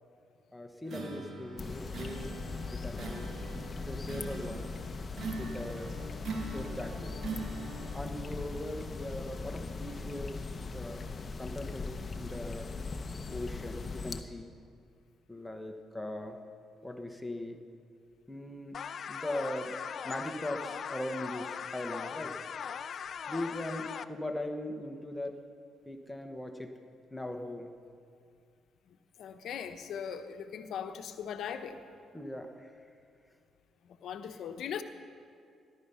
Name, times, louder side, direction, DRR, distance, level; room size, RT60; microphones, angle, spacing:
voice 1, 0.5-2.4 2.7-3.3 3.8-4.7 5.4-5.9 6.4-7.2 7.9-11.1 11.4-12.7 13.3-14.5 15.3-16.4 16.8-17.6 18.3-19.8 20.0-22.4 23.3-25.4 25.9-26.8 27.1-27.7 32.1-32.7, left 1 dB, 10° left, 5 dB, 1.3 m, -40 dB
sound 1, 0.8-8.0, right 3 dB, 55° right, 2.2 m, -42 dB
sound 2, 1.6-14.2, left 4 dB, 35° left, 0.9 m, -40 dB
sound 3, 18.7-24.0, left 7 dB, 55° left, 0.5 m, -40 dB
voice 2, 29.2-31.8 34.0-34.8, left 8 dB, 75° left, 7 dB, 1.0 m, -39 dB
17.5 x 12.0 x 5.7 m, 2.4 s
cardioid pair, 90°, 0 cm